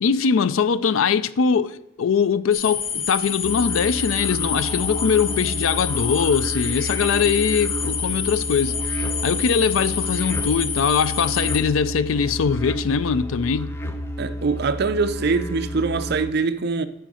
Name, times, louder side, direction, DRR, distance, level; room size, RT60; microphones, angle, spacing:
voice 1, 0.0-8.8 9.2-13.7, left 6 dB, 80° left, 0.4 m, -21 dB
sound 1, 2.5-11.6, left 7 dB, 45° left, 0.8 m, -28 dB
sound 2, 3.4-16.3, equal, 10° left, 0.5 m, -31 dB
voice 2, 14.2-16.9, right 4 dB, 55° right, 0.5 m, -23 dB
9.0 x 4.7 x 6.1 m
head